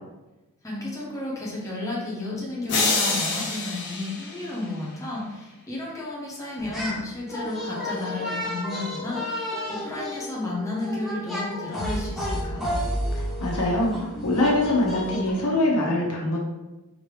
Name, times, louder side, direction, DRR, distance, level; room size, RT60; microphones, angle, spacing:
voice 1, 0.6-12.7, left 2 dB, 15° left, -5 dB, 1.1 m, -32 dB
sound 1, 2.7-5.0, left 3 dB, 55° left, 1.1 m, -27 dB
sound 2, 6.6-7.0 7.3-15.3, left 1 dB, ahead, 1.3 m, -31 dB
voice 2, 13.1-16.4, left 1 dB, 85° left, -2 dB, 1.2 m, -24 dB
5.0 x 3.1 x 3.2 m, 1.1 s
head